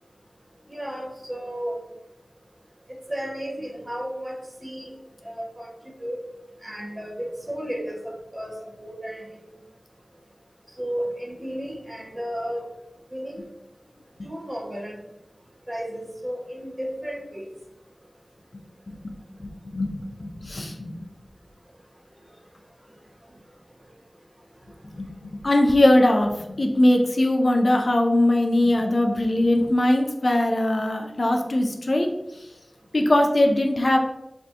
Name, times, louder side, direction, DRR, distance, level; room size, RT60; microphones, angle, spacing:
voice 1, 0.7-1.8 3.1-4.9 5.2-5.7 6.0-6.2 6.6-9.5 10.8-12.6 13.1-13.5 14.2-15.0 15.7-17.5, equal, 30° right, -1 dB, 0.8 m, -33 dB
voice 2, 19.4-19.9 20.2-20.9 25.0-32.1 32.9-34.0, left 1 dB, 55° left, 3 dB, 0.4 m, -21 dB
3.4 x 2.4 x 2.6 m, 0.91 s
wide cardioid pair, 55°, 0 cm